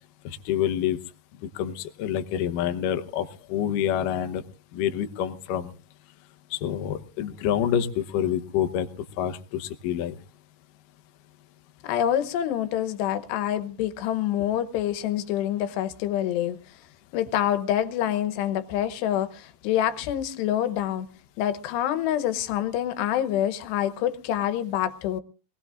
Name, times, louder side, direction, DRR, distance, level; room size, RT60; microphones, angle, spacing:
voice 1, 0.2-1.0 1.6-4.4 4.7-5.7 6.5-8.9 9.2-10.1, left 10 dB, 70° left, 2.2 m, -27 dB
voice 2, 11.8-16.6 17.1-21.1 21.4-25.2, left 11 dB, 90° left, 3.1 m, -26 dB
24.0 x 18.5 x 2.4 m
omnidirectional pair, 4.7 m